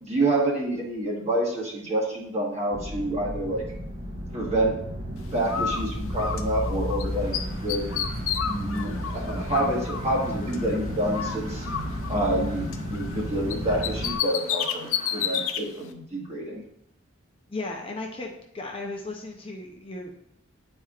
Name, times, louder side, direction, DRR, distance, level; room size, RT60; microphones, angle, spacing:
voice 1, 0.0-3.6 4.3-4.8 5.3-7.3 7.6-8.0 8.4-11.7 12.1-16.6, right 1 dB, 30° right, -3 dB, 1.3 m, -28 dB
sound 1, 2.7-14.1, equal, 60° right, 1.8 m, -33 dB
Bird, 5.5-7.0 7.3-10.8 11.1-13.2 13.5-15.6, left 8 dB, 75° left, 0.5 m, -31 dB
sound 2, 7.1-15.5, equal, 85° right, 2.0 m, -46 dB
voice 2, 17.5-20.1, left 2 dB, 25° left, 0 dB, 0.6 m, -35 dB
9.9 x 4.3 x 2.4 m, 0.75 s
head